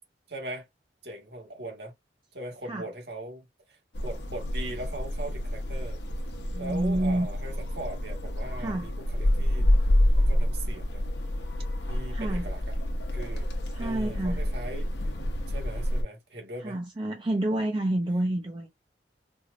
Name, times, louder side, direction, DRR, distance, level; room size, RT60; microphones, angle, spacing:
voice 1, 0.3-0.6 1.0-1.9 2.3-3.8 4.0-6.0 6.6-9.7 10.3-11.0 11.9-12.7 13.1-13.5 13.8-14.9 15.5-16.8, right 1 dB, 65° right, 1.6 m, -40 dB
sound 1, 3.9-16.0, left 1 dB, 70° left, 0.9 m, -28 dB
voice 2, 6.5-7.3 8.6-8.9 12.1-12.5 13.7-14.4 16.6-18.7, right 1 dB, 30° right, 0.5 m, -28 dB
4.4 x 2.4 x 2.6 m
head